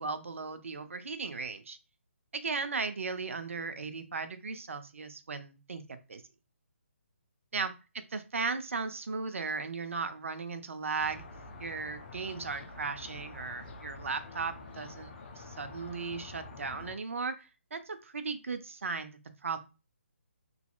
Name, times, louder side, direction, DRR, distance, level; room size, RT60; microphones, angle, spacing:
voice 1, 0.0-1.8 2.3-6.2 7.5-7.7 8.1-11.2 11.6-19.6, right 4 dB, 70° right, 9 dB, 0.5 m, -36 dB
sound 1, 11.0-17.0, left 3 dB, 45° left, 0.8 m, -47 dB
3.0 x 2.7 x 2.3 m, 0.31 s
figure-of-eight pair, 145°, 7 cm